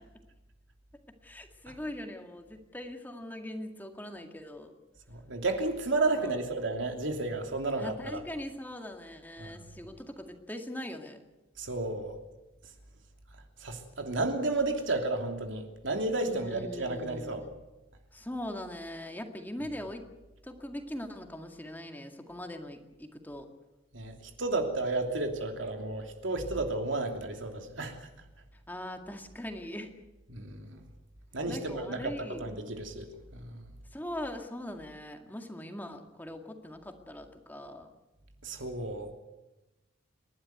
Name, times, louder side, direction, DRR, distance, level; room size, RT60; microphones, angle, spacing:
voice 1, 1.2-4.7 6.1-6.4 7.8-11.2 16.3-17.5 18.1-20.1 20.4-23.5 28.7-29.9 31.5-32.4 33.9-37.9, left 1 dB, 10° left, 4 dB, 2.0 m, -41 dB
voice 2, 5.1-8.2 9.4-9.5 11.6-12.2 13.6-17.4 23.9-28.0 30.3-30.8 31.3-32.1 32.4-33.1 33.3-33.6 38.4-39.1, right 2 dB, 75° right, 4 dB, 3.0 m, -32 dB
29.5 x 12.0 x 9.4 m, 1.0 s
head